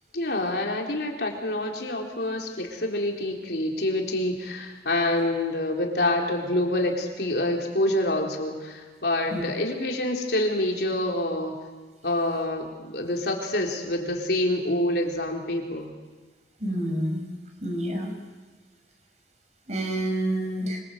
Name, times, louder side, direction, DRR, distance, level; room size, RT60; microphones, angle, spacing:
voice 1, 0.1-11.6 12.0-15.9, left 1 dB, 70° left, 1 dB, 3.9 m, -27 dB
voice 2, 16.6-17.2 17.6-18.1 19.7-20.8, right 1 dB, 40° right, 3 dB, 5.4 m, -28 dB
25.5 x 24.5 x 8.0 m, 1.5 s
head